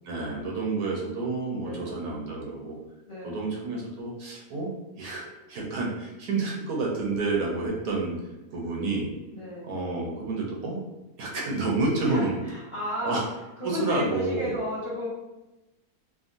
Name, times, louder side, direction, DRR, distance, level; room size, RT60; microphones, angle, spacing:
voice 1, 0.0-2.8 3.2-4.7 5.0-8.2 8.5-9.1 9.6-10.8 11.2-12.4 13.0-13.2 13.6-14.5, right 3 dB, 75° right, -2 dB, 1.1 m, -29 dB
voice 2, 1.6-1.9 3.1-3.5 9.3-9.7 12.0-13.2 13.6-15.1, left 1 dB, 25° left, -8 dB, 0.7 m, -33 dB
3.6 x 2.1 x 2.5 m, 1.0 s
omnidirectional pair, 1.6 m